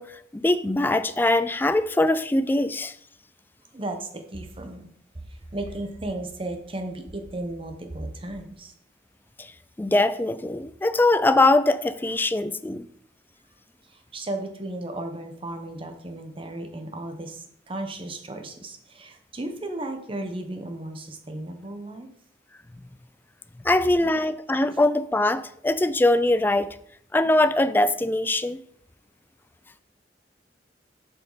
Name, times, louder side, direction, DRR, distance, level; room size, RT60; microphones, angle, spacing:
voice 1, 0.0-3.0 9.4-9.5 9.8-12.9 23.6-26.8 27.1-28.6, left 2 dB, 10° left, 0.3 m, -22 dB
voice 2, 3.7-4.9 5.1-8.7 13.8-22.1, right 1 dB, 30° right, 0.9 m, -35 dB
7.8 x 5.4 x 4.0 m
head